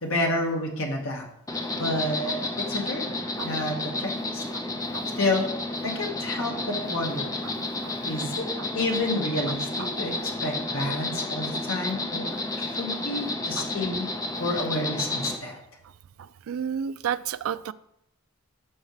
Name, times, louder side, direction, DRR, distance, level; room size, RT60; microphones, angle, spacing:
voice 1, 0.0-1.2 1.7-3.0 3.4-4.4 5.2-5.4 5.8-7.3 8.1-8.4 8.7-14.0 14.4-15.6, left 1 dB, 65° left, 0 dB, 1.9 m, -29 dB
Insect, 1.5-15.4, left 2 dB, 15° left, 0.7 m, -31 dB
voice 2, 16.5-17.7, right 8 dB, 65° right, 15 dB, 0.3 m, -30 dB
12.5 x 5.5 x 3.3 m, 0.77 s
head